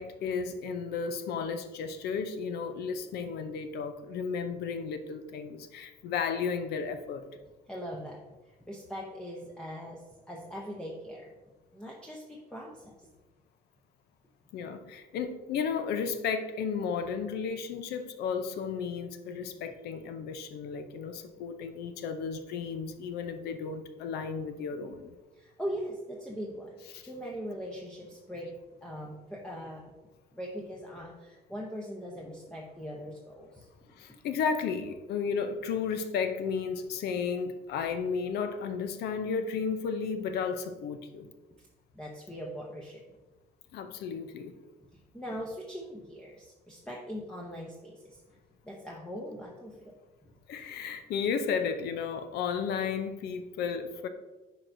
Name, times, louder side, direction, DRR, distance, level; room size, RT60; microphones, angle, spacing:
voice 1, 0.0-7.3 14.5-25.2 26.9-27.0 33.9-41.3 43.7-44.6 50.5-54.1, left 6 dB, 75° left, 9 dB, 0.6 m, -33 dB
voice 2, 7.7-8.2 8.7-11.3 11.7-13.1 25.3-28.5 28.8-29.9 30.3-33.7 41.2-41.3 41.9-43.0 44.9-48.2 48.6-50.0 50.2-50.3, equal, 5° left, -3 dB, 0.8 m, -41 dB
8.4 x 4.7 x 2.6 m, 1.2 s
cardioid pair, 110°, 17 cm